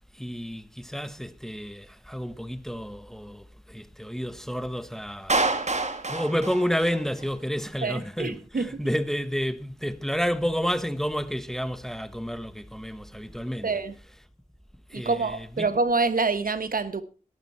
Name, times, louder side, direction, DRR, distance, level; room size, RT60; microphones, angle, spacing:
voice 1, 0.1-5.4 5.7-14.2 14.9-15.7, equal, 5° left, 1.1 m, -30 dB
Clapping, 5.3-7.3, right 3 dB, 50° right, 2.0 m, -27 dB
voice 2, 7.8-8.7 13.6-13.9 14.9-17.0, right 4 dB, 75° right, 1.3 m, -26 dB
13.0 x 12.0 x 4.4 m
wide cardioid pair, 60°, 15 cm